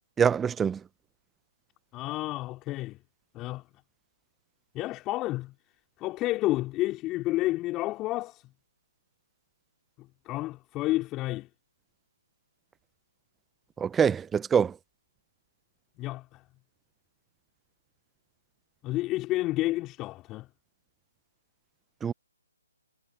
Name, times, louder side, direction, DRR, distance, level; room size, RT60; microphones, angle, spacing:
voice 1, 0.2-0.8 13.8-14.7 22.0-22.1, right 7 dB, 10° right, 0.8 m, -24 dB
voice 2, 1.9-3.0 3.3-3.6 4.7-5.5 6.0-8.4 10.3-11.5 16.0-16.4 18.8-20.5, left 17 dB, 15° left, 4.3 m, -30 dB
figure-of-eight pair, 140°, 0 cm